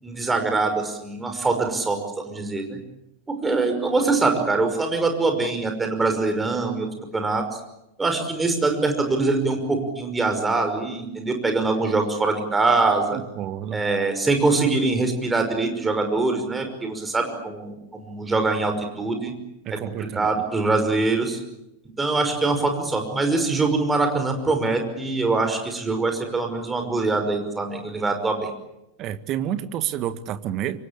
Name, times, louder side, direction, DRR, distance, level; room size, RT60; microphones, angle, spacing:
voice 1, 0.0-2.8 3.3-6.9 7.1-7.6 8.0-13.2 13.7-19.3 19.7-21.4 22.0-28.5, right 3 dB, 10° right, 5 dB, 5.6 m, -23 dB
voice 2, 13.1-13.8 19.7-20.3 29.0-30.8, right 10 dB, 35° right, 12 dB, 1.7 m, -29 dB
27.0 x 24.0 x 8.6 m, 0.89 s
figure-of-eight pair, 90°, 0 cm